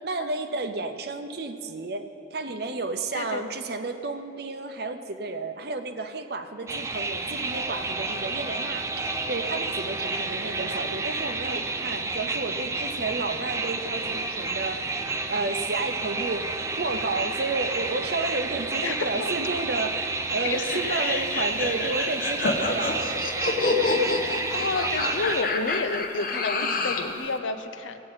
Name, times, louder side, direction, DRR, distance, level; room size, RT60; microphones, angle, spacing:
voice 1, 0.0-15.0 15.3-23.0, right 3 dB, 55° right, 8 dB, 0.7 m, -32 dB
sound 1, 6.7-25.4, right 3 dB, 15° right, 0.4 m, -30 dB
voice 2, 18.8-19.3 20.4-20.6 24.5-28.0, left 4 dB, 90° left, 9 dB, 0.6 m, -30 dB
sound 2, 20.6-27.1, left 3 dB, 50° left, 0.9 m, -28 dB
17.0 x 8.8 x 4.0 m, 2.9 s
head